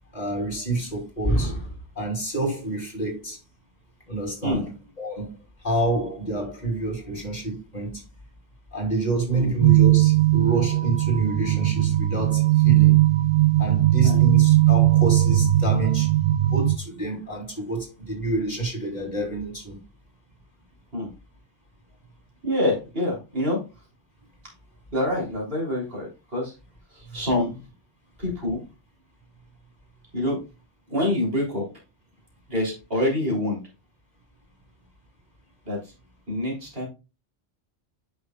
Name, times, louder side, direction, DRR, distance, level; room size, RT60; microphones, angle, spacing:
voice 1, 0.1-3.4 4.1-4.7 5.0-5.3 5.6-8.0 8.7-13.0 13.6-16.1 16.5-19.8, right 2 dB, 40° left, 3.1 m, -27 dB
sound 1, 9.6-16.8, right 14 dB, 85° right, 1.0 m, -19 dB
voice 2, 22.4-23.6 24.9-26.5 26.9-27.7 28.2-28.6 30.1-30.4 30.9-31.7 32.5-33.6 35.6-35.9 36.3-36.9, left 1 dB, 55° right, 3.5 m, -26 dB
9.3 x 6.0 x 2.3 m
omnidirectional pair, 1.2 m